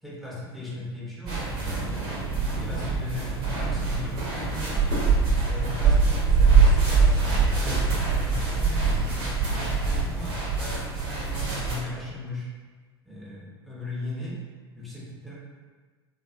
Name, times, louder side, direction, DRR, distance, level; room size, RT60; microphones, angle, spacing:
voice 1, 0.0-2.0 2.5-4.8 5.4-12.5 13.0-14.4 14.7-15.3, left 1 dB, ahead, -6 dB, 0.9 m, -38 dB
sound 1, 1.3-11.8, right 4 dB, 45° right, 1.1 m, -23 dB
3.2 x 2.6 x 2.4 m, 1.4 s
figure-of-eight pair, 80°, 13 cm